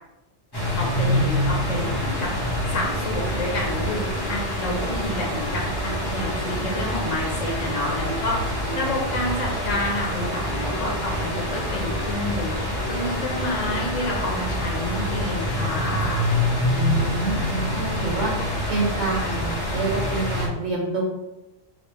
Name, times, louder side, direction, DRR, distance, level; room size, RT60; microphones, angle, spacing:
sound 1, 0.5-20.5, left 1 dB, 20° left, 1.0 m, -26 dB
voice 1, 0.8-2.3 2.7-16.3, left 1 dB, 90° left, -1 dB, 1.3 m, -29 dB
sound 2, 3.1-16.1, right 2 dB, 50° left, 1.0 m, -41 dB
voice 2, 16.7-18.3 18.7-21.0, right 3 dB, 65° right, -6 dB, 1.5 m, -27 dB
3.4 x 3.4 x 4.2 m, 0.98 s
omnidirectional pair, 1.3 m